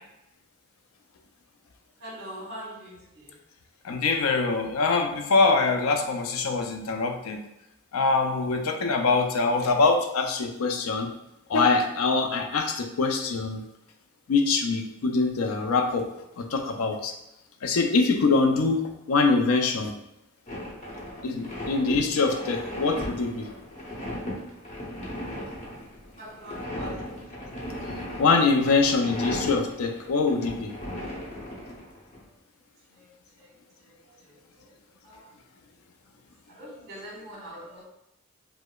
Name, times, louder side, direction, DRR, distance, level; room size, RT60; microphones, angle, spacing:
voice 1, 2.0-3.3 26.2-27.0 33.4-33.5 35.0-35.2 36.5-37.9, equal, 55° right, -4 dB, 1.2 m, -42 dB
voice 2, 3.8-7.4 7.9-11.1 11.5-13.6 14.3-16.1 16.4-17.1 17.6-19.9 21.2-23.5 28.2-30.7, left 4 dB, 80° left, 5 dB, 0.4 m, -24 dB
sound 1, 20.5-32.2, left 1 dB, 35° left, 0.8 m, -36 dB
4.7 x 2.1 x 2.3 m, 0.86 s
head